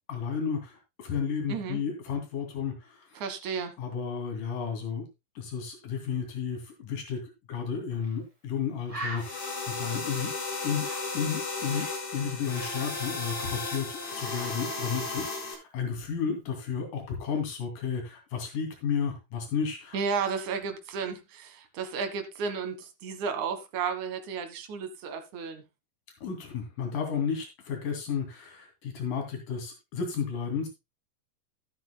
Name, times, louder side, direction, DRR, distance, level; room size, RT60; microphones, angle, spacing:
voice 1, 0.1-3.2 3.8-5.1 5.4-10.3 10.6-15.3 15.5-20.0 26.2-30.7, left 6 dB, 85° left, 4.3 m, -33 dB
voice 2, 1.5-1.8 3.2-3.7 19.9-25.6, right 5 dB, 70° right, 2.9 m, -33 dB
Bird, 8.0-8.2 8.5-8.6 8.9-12.1 12.3-14.0 14.3-14.6, right 2 dB, 10° right, 4.4 m, -43 dB
sound 1, 9.2-15.5, left 3 dB, 70° left, 5.7 m, -34 dB
13.0 x 11.5 x 2.2 m
omnidirectional pair, 3.6 m